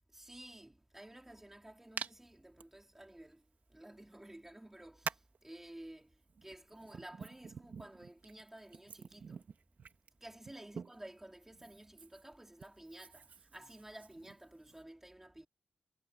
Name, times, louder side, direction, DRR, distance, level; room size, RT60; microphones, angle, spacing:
voice 1, 0.1-9.5 10.2-15.5, right 1 dB, 10° right, 4.4 m, -53 dB
Hands, 2.0-2.1 2.6-2.7 3.9-4.0 5.0-5.4 6.3-11.1 11.5-14.8, right 5 dB, 65° right, 2.2 m, -47 dB
wide cardioid pair, 115°, 3 cm